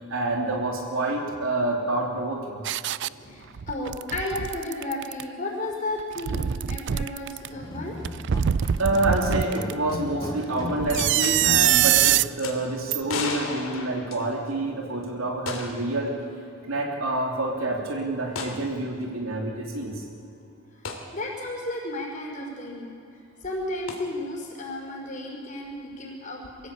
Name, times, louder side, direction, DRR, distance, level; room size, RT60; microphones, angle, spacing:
voice 1, 0.1-2.6 8.8-16.1 16.7-20.0, right 2 dB, 80° right, 1 dB, 3.4 m, -27 dB
sound 1, 2.6-3.1 3.6-5.2 6.0-7.5 8.0-9.7 10.8-12.3 12.9-13.0, right 11 dB, 55° right, 0.4 m, -24 dB
voice 2, 3.1-8.0 21.1-22.9 23.4-26.4, left 2 dB, 40° left, -1 dB, 5.3 m, -33 dB
sound 2, 7.5-12.1, left 1 dB, 20° left, 4.8 m, -36 dB
sound 3, 10.9-11.4 11.7-11.8 12.4-12.5 13.1-14.6 15.5-15.9 16.2-16.3 18.3-18.6 20.8-21.0 23.9-24.0, left 4 dB, 75° left, 2.7 m, -33 dB
23.5 x 15.5 x 8.7 m, 2.6 s
head